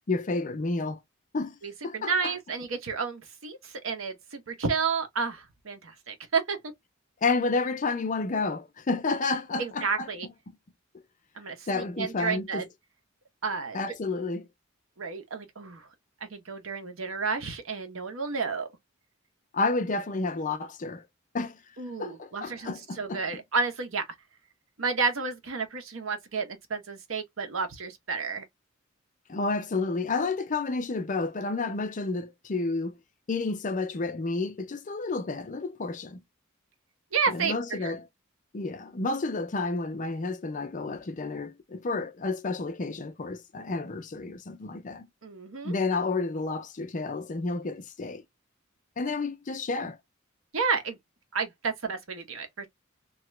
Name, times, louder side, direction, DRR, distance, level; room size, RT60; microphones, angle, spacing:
voice 1, 0.1-1.0 1.3-1.5 1.8-2.3 7.2-10.1 11.7-12.6 13.7-14.5 19.5-21.0 21.3-21.6 22.0-23.2 29.3-32.9 33.3-36.2 37.3-38.0 38.5-45.1 45.6-48.2 49.0-50.0, left 3 dB, 40° left, 0.5 m, -30 dB
voice 2, 1.6-6.6 9.6-10.3 11.3-12.7 13.4-13.8 15.0-15.9 16.2-18.7 21.8-24.1 24.8-28.4 37.1-37.9 45.2-45.7 50.5-51.0 51.3-52.7, right 5 dB, 70° right, 0.9 m, -31 dB
2.8 x 2.4 x 3.1 m
head